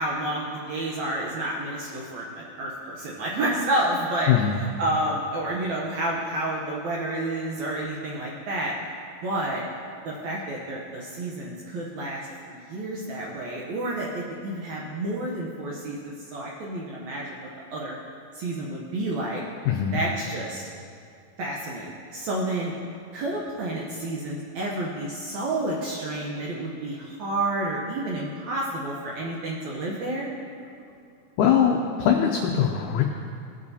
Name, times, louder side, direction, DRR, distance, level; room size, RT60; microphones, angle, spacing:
voice 1, 0.0-8.7 9.2-9.6 10.0-17.9 18.3-19.4 19.9-20.7 21.4-22.7 23.1-30.3, right 1 dB, 70° right, -4 dB, 1.8 m, -30 dB
voice 2, 4.3-4.6 19.7-20.0 31.4-33.0, left 8 dB, 85° left, 2 dB, 1.7 m, -21 dB
18.0 x 7.4 x 2.8 m, 2.4 s
omnidirectional pair, 4.3 m